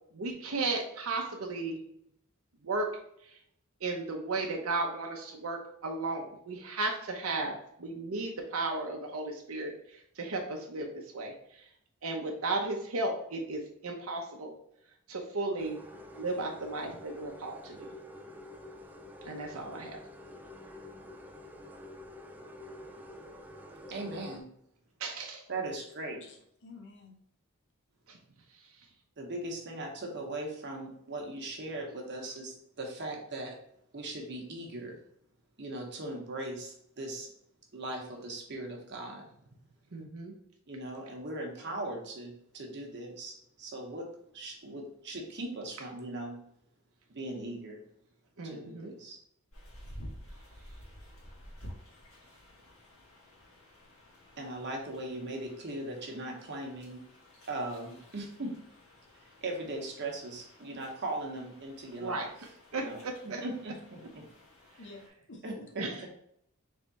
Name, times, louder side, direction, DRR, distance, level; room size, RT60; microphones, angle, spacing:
voice 1, 0.1-1.8 2.6-2.9 3.2-3.4 3.8-11.7 12.0-14.5 15.1-15.8 16.2-17.9 19.2-20.0 25.0-25.4 28.1-28.2 28.5-28.6 39.9-40.3 48.4-48.9 62.0-62.3 62.7-63.4 65.8-66.1, right 2 dB, 70° right, 1 dB, 0.7 m, -35 dB
sound 1, 15.6-24.4, left 1 dB, 10° right, 0.3 m, -48 dB
voice 2, 23.9-24.5 25.5-26.2 29.2-33.6 33.9-35.0 35.6-37.3 37.7-39.2 40.7-46.4 47.1-47.8 48.4-49.2 54.4-57.1 57.5-58.6 59.4-62.3 62.8-63.0 63.2-64.2 65.4-65.5, right 2 dB, 50° right, 1 dB, 1.0 m, -39 dB
voice 3, 26.3-27.1 64.8-65.4 65.9-66.1, left 2 dB, 55° left, 0 dB, 0.8 m, -50 dB
sound 2, 49.5-65.1, equal, 70° left, 1.7 m, -52 dB
3.6 x 3.3 x 4.0 m, 0.71 s
head